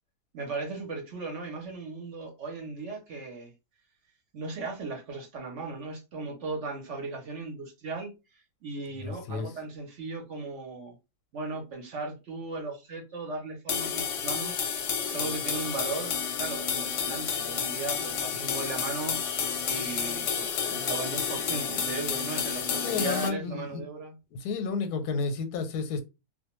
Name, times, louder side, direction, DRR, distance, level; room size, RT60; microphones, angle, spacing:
voice 1, 0.3-3.5 4.3-11.0 11.3-19.2 19.7-24.2, right 3 dB, 60° right, 0.9 m, -37 dB
voice 2, 9.0-9.5 22.8-23.8 24.3-26.0, left 4 dB, 90° left, 1.1 m, -31 dB
sound 1, 13.7-23.3, left 7 dB, 65° left, 0.8 m, -30 dB
2.4 x 2.2 x 2.9 m
omnidirectional pair, 1.6 m